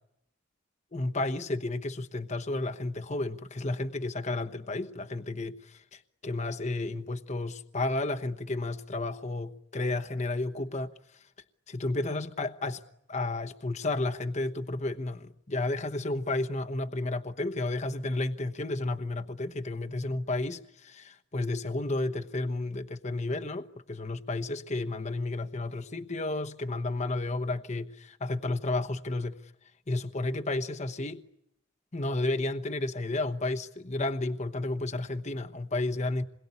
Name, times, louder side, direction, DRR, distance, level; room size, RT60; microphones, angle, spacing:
voice 1, 0.9-10.9 11.7-12.8 13.1-29.3 29.9-31.2 31.9-36.2, left 2 dB, 35° left, 1.1 m, -32 dB
28.0 x 22.0 x 9.7 m
head